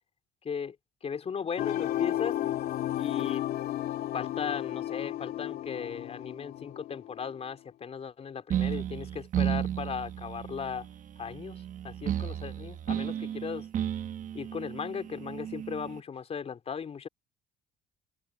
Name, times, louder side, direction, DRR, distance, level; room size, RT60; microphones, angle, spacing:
voice 1, 0.4-0.8 1.0-2.4 3.0-3.4 4.1-10.9 11.2-13.7 14.3-17.1, left 6 dB, 40° left, 4.0 m, -37 dB
sound 1, 1.6-7.4, left 13 dB, 70° left, 2.3 m, -33 dB
sound 2, 8.5-16.0, right 10 dB, 50° right, 1.1 m, -33 dB
cardioid pair, 110°, 17 cm